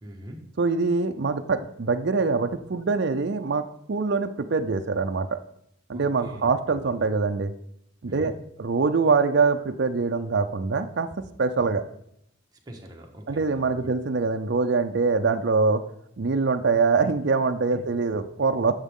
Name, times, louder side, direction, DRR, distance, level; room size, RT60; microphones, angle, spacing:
voice 1, 0.0-0.4 5.9-6.4 8.1-8.3 11.6-11.8 12.7-13.9, equal, 20° right, 1 dB, 1.4 m, -42 dB
voice 2, 0.6-5.4 5.9-7.5 8.0-8.3 8.6-11.1 11.4-11.8 13.3-15.8 16.2-18.7, right 4 dB, 55° right, 6 dB, 0.5 m, -24 dB
10.5 x 7.3 x 3.7 m, 0.74 s
head